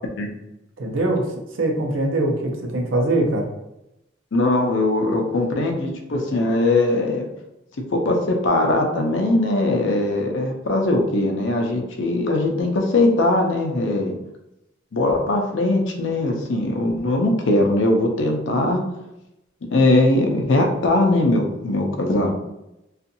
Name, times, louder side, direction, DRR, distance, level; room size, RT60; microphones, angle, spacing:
voice 1, 0.8-1.3 1.5-3.5, right 2 dB, 85° right, 2 dB, 0.6 m, -22 dB
voice 2, 4.3-7.3 7.9-14.1 14.9-18.8 19.7-22.3, left 2 dB, 75° left, 2 dB, 0.5 m, -20 dB
2.6 x 2.4 x 2.6 m, 0.88 s
head